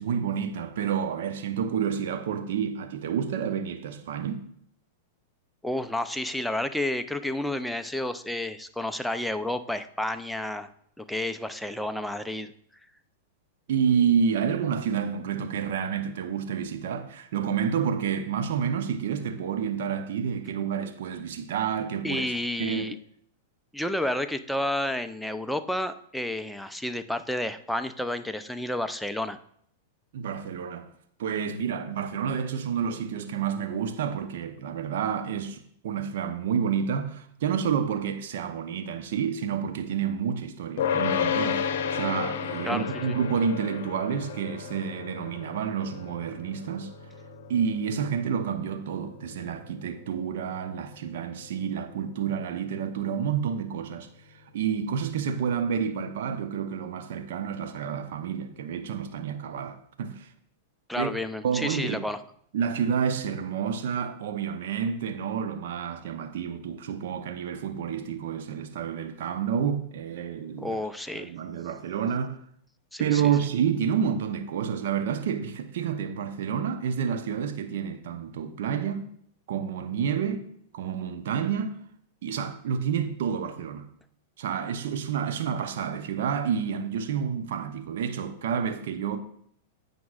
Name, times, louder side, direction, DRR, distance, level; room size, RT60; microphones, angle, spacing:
voice 1, 0.0-4.4 13.7-22.3 22.6-22.9 30.1-30.9 31.2-46.9 47.5-54.1 54.5-60.3 61.0-61.1 61.4-62.0 62.5-70.8 71.1-72.4 73.0-79.1 79.5-80.5 80.7-81.8 82.2-83.9 84.4-89.2, right 7 dB, 60° right, 0.8 m, -29 dB
voice 2, 5.6-10.7 11.0-12.5 22.0-23.0 23.7-29.4 42.7-43.2 60.9-62.2 70.6-71.3 72.9-73.3, left 1 dB, ahead, 0.5 m, -31 dB
sound 1, 40.8-52.1, left 7 dB, 60° left, 0.7 m, -33 dB
15.0 x 5.2 x 2.5 m
figure-of-eight pair, 100°, 0 cm